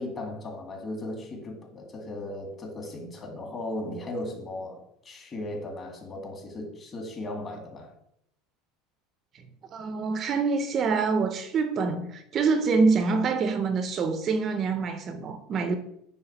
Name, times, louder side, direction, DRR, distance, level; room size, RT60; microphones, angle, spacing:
voice 1, 0.0-7.9, left 1 dB, 25° left, 2.0 m, -37 dB
voice 2, 9.7-15.8, right 4 dB, 35° right, 0.6 m, -25 dB
8.8 x 3.6 x 6.0 m
supercardioid pair, 145°, 0 cm